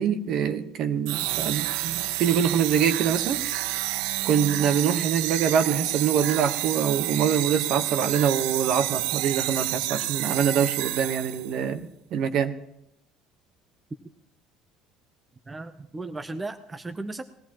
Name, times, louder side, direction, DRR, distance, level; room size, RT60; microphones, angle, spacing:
voice 1, 0.0-3.4 4.2-11.8 12.1-12.5, right 8 dB, 50° right, 9 dB, 1.1 m, -24 dB
sound 1, 1.1-11.6, right 16 dB, 90° right, 0.4 m, -29 dB
voice 2, 15.5-17.2, right 2 dB, 15° right, 8 dB, 0.7 m, -35 dB
20.0 x 16.0 x 3.0 m, 0.80 s
cardioid pair, 155°, 0 cm